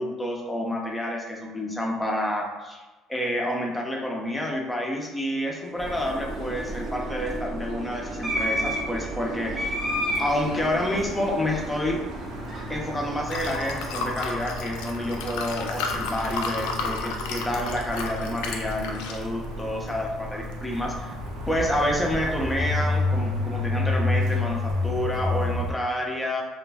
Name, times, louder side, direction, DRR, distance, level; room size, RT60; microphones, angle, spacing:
voice 1, 0.0-2.8 3.1-9.7 10.2-12.0 12.7-21.2 21.5-26.4, left 1 dB, 10° left, 0 dB, 0.6 m, -29 dB
sound 1, 5.5-14.0, equal, 35° right, 0.6 m, -33 dB
sound 2, 5.8-25.7, left 2 dB, 75° right, 0.7 m, -32 dB
Liquid, 12.2-22.8, left 4 dB, 85° left, 0.3 m, -34 dB
2.4 x 2.1 x 3.4 m, 1.1 s
supercardioid pair, 100°, 0 cm